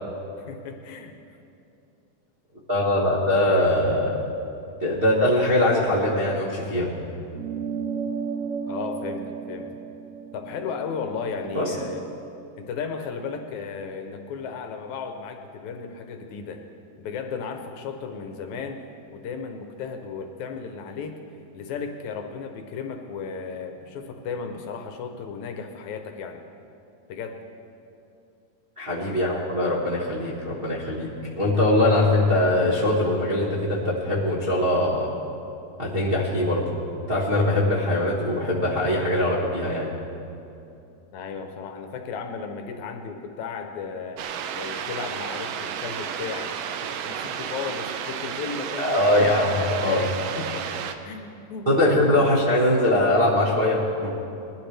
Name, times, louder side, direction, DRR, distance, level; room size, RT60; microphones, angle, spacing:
voice 1, 0.4-1.1 3.3-3.4 8.7-9.7 10.3-12.0 12.6-16.6 17.0-18.8 19.1-21.2 21.5-26.4 27.1-27.4 41.1-46.5 46.8-52.0, left 5 dB, 75° left, 5 dB, 2.0 m, -35 dB
voice 2, 2.7-4.1 4.8-6.9 11.5-11.7 28.8-31.1 31.4-35.1 35.8-36.6 37.1-39.9 48.8-50.1 51.7-54.1, left 1 dB, 40° right, -7 dB, 0.8 m, -22 dB
sound 1, 7.3-12.1, right 6 dB, 65° right, 2.4 m, -34 dB
sound 2, 44.2-50.9, right 8 dB, 85° right, 1.4 m, -32 dB
20.5 x 12.0 x 3.4 m, 2.7 s
omnidirectional pair, 3.7 m